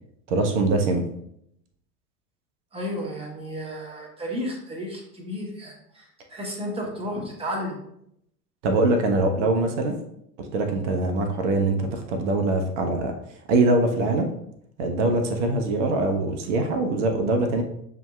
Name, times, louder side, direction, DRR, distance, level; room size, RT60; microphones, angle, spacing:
voice 1, 0.3-1.1 8.6-10.0 10.4-13.1 13.5-14.3 14.8-17.6, right 2 dB, 45° right, 5 dB, 0.7 m, -23 dB
voice 2, 2.7-7.8, equal, 10° right, -1 dB, 1.1 m, -33 dB
6.8 x 2.8 x 2.3 m, 0.75 s
figure-of-eight pair, 80°, 49 cm